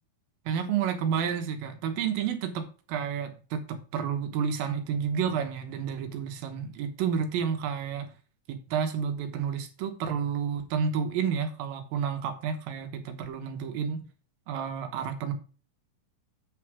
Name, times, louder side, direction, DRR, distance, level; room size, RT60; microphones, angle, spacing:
voice 1, 0.5-8.1 8.5-14.0 14.5-15.3, right 7 dB, 85° right, 6 dB, 3.0 m, -30 dB
8.4 x 5.0 x 6.0 m, 0.37 s
omnidirectional pair, 4.0 m